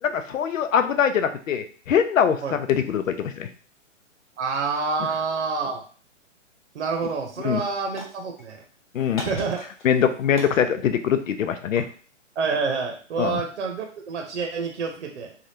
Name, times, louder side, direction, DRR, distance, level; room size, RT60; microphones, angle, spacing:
voice 1, 0.0-3.5 7.4-7.6 8.9-9.3 9.8-11.9 13.2-13.4, left 8 dB, 80° left, 9 dB, 0.6 m, -23 dB
voice 2, 4.4-5.8 6.7-8.6 9.2-9.6 12.4-15.3, right 4 dB, 65° right, 3 dB, 0.8 m, -28 dB
sound 1, 6.8-7.1 7.4-8.6 9.2-10.1 10.3-12.0, left 2 dB, 40° left, 0.7 m, -41 dB
3.4 x 2.4 x 2.7 m, 0.41 s
hypercardioid pair, 170°, 38 cm